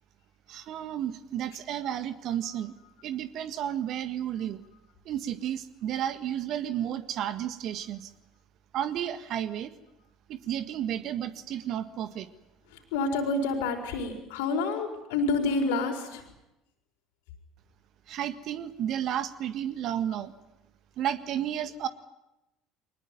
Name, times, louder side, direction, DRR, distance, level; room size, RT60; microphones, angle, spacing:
voice 1, 0.5-2.7 3.0-4.6 5.1-8.1 8.7-9.7 10.3-12.3 18.1-20.3 21.0-21.9, right 10 dB, 55° right, 11 dB, 1.7 m, -32 dB
voice 2, 12.9-16.2, left 3 dB, 70° left, 4 dB, 4.7 m, -28 dB
23.5 x 20.0 x 9.8 m, 0.91 s
hypercardioid pair, 60°, 0 cm